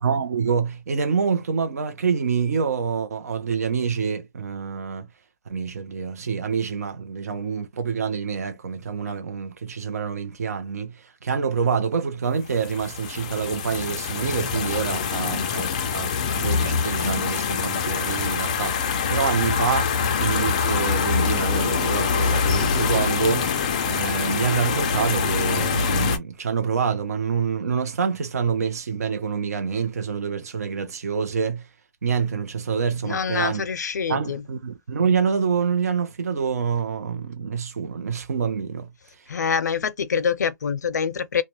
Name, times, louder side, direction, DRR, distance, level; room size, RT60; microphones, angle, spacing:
voice 1, 0.0-5.1 5.5-19.9 20.2-23.6 23.9-31.7 32.0-33.6 34.1-38.9, right 6 dB, 60° right, 0.6 m, -26 dB
sound 1, 12.5-26.2, left 5 dB, 25° left, 0.3 m, -24 dB
voice 2, 33.0-34.4 39.3-41.4, left 6 dB, 80° left, 0.5 m, -25 dB
2.4 x 2.1 x 2.9 m
hypercardioid pair, 170°, 9 cm